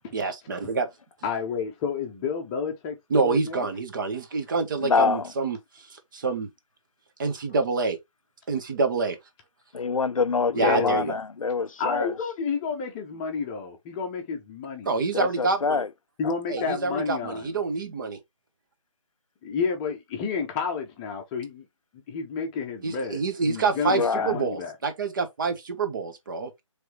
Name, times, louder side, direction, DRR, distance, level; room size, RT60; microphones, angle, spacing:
voice 1, 0.1-0.9 3.1-5.6 6.1-6.5 7.2-8.0 8.5-9.2 10.5-11.2 14.9-15.8 16.5-18.2 22.8-26.5, right 4 dB, 40° right, 1.0 m, -27 dB
voice 2, 1.2-3.7 10.5-11.1 11.8-14.9 16.2-17.6 19.4-21.7 22.1-24.7, left 5 dB, 15° left, 0.8 m, -30 dB
voice 3, 4.8-5.3 9.7-12.1 15.1-15.9 23.9-24.4, left 5 dB, 90° left, 0.4 m, -25 dB
4.6 x 3.3 x 3.1 m
figure-of-eight pair, 150°, 17 cm